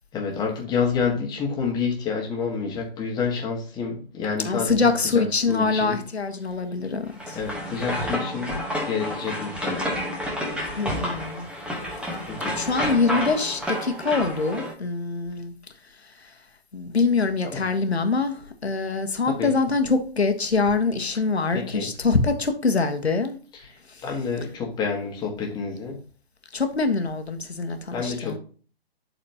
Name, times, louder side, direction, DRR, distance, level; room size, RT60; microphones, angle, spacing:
voice 1, 0.1-6.0 7.3-10.0 12.3-12.6 17.4-17.7 18.8-18.9 19.2-19.5 21.5-21.9 23.5-23.7 24.0-26.0 27.9-28.4, left 5 dB, 15° left, 0 dB, 1.5 m, -29 dB
voice 2, 4.4-7.4 10.8-11.5 12.5-15.5 16.7-18.3 18.6-23.4 26.5-28.4, left 4 dB, 85° left, 7 dB, 1.3 m, -24 dB
sound 1, 7.1-14.7, equal, 5° right, 1.1 m, -30 dB
11.5 x 4.3 x 2.9 m, 0.40 s
figure-of-eight pair, 135°, 31 cm